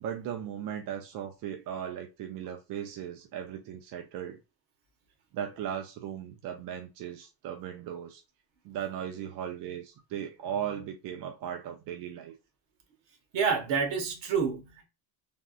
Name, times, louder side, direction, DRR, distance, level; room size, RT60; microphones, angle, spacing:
voice 1, 0.0-4.4 5.3-8.2 8.6-12.3, right 9 dB, 50° right, 0.4 m, -37 dB
voice 2, 13.3-14.8, right 6 dB, 65° right, 1.2 m, -28 dB
3.4 x 2.5 x 2.4 m
cardioid pair, 170°, 47 cm